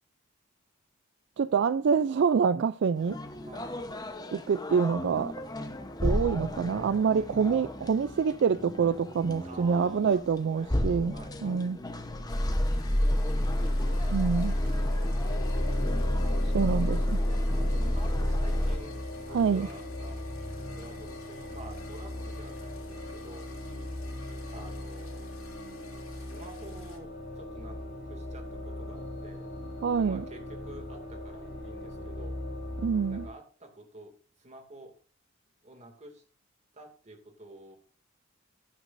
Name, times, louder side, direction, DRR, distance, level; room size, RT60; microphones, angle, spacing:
voice 1, 1.4-3.2 4.3-5.3 6.0-11.1 11.4-11.8 14.1-14.6 16.5-17.2 19.3-19.7 29.8-30.2 32.8-33.3, right 6 dB, 60° right, 0.3 m, -26 dB
sound 1, 3.0-18.8, left 1 dB, 20° left, 0.9 m, -30 dB
voice 2, 3.4-3.8 7.1-8.0 9.4-10.7 11.1-11.7 13.2-13.8 16.6-16.7 17.6-20.3 20.7-23.5 24.5-25.3 26.0-27.8 28.0-29.5 29.9-32.4 33.1-34.9 35.6-36.2 36.7-37.8, right 1 dB, 35° right, 2.3 m, -49 dB
sound 2, 12.3-27.0, left 4 dB, 85° left, 2.7 m, -54 dB
sound 3, 13.5-33.3, left 1 dB, 55° left, 5.6 m, -39 dB
11.5 x 11.0 x 2.6 m
head